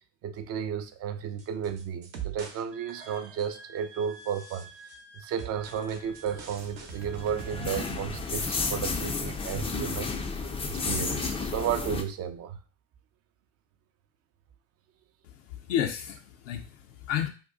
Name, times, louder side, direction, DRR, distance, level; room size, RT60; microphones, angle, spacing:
voice 1, 0.2-4.7 5.1-12.6, right 8 dB, 40° right, 9 dB, 0.5 m, -33 dB
sound 1, 1.4-2.6 2.9-3.6 4.1-5.0 5.4-8.6 8.9-9.0, right 8 dB, 65° right, 0.8 m, -43 dB
Wind instrument woodwind instrument, 2.7-8.0, right 3 dB, 90° right, 0.8 m, -51 dB
sound 2, 6.1-12.0, left 4 dB, 15° left, 0.4 m, -32 dB
voice 2, 15.2-17.3, left 9 dB, 75° left, 3 dB, 0.5 m, -32 dB
2.6 x 2.3 x 3.6 m, 0.34 s
hypercardioid pair, 70°, 38 cm